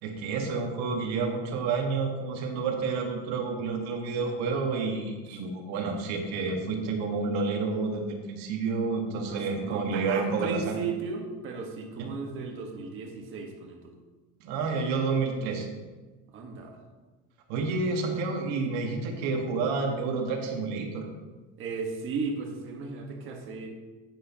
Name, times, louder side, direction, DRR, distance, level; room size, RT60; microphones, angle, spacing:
voice 1, 0.0-10.8 12.0-12.1 14.4-15.7 17.5-21.1, right 4 dB, 65° right, 2 dB, 1.6 m, -29 dB
voice 2, 9.3-13.9 16.3-16.8 21.6-23.7, right 4 dB, 40° right, 1 dB, 1.4 m, -35 dB
9.6 x 9.3 x 2.9 m, 1.3 s
cardioid pair, 160°, 30 cm